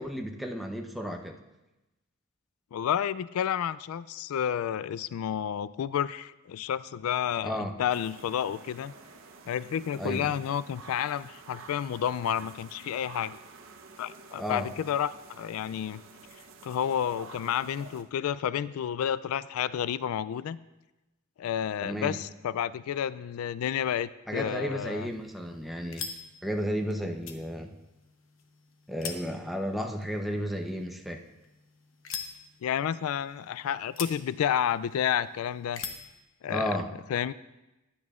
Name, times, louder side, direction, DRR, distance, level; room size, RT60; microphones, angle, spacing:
voice 1, 0.0-1.4 7.4-7.7 10.0-10.3 14.3-14.7 21.8-22.2 24.3-26.0 26.4-27.7 28.9-31.2 36.5-36.9, equal, ahead, 2 dB, 0.7 m, -33 dB
voice 2, 2.7-8.9 9.5-13.4 14.0-16.0 16.6-20.6 21.4-25.1 32.6-35.8 36.4-36.7 37.1-37.3, left 9 dB, 85° left, 18 dB, 0.3 m, -30 dB
sound 1, 7.9-18.0, right 4 dB, 65° right, 0.8 m, -50 dB
sound 2, 24.8-36.2, left 6 dB, 65° left, 1.0 m, -45 dB
15.5 x 10.0 x 2.4 m, 1.0 s
head